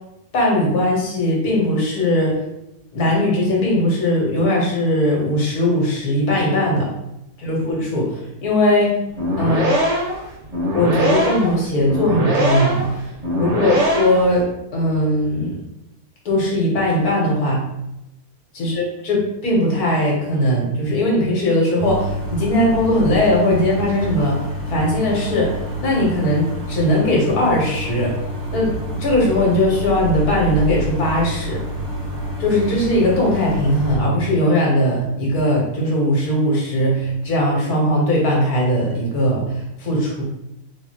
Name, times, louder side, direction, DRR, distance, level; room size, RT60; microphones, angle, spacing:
voice 1, 0.3-2.3 2.9-6.9 7.4-9.0 9.4-9.7 10.7-14.5 14.7-15.6 16.3-17.6 18.5-24.4 24.7-25.6 25.8-28.1 28.5-31.6 32.4-40.2, left 1 dB, 75° left, -3 dB, 1.8 m, -19 dB
sound 1, 9.1-14.4, equal, 40° right, 0.6 m, -21 dB
sound 2, 21.8-34.0, right 1 dB, 70° right, 1.9 m, -28 dB
3.7 x 3.0 x 4.3 m, 0.88 s
omnidirectional pair, 1.6 m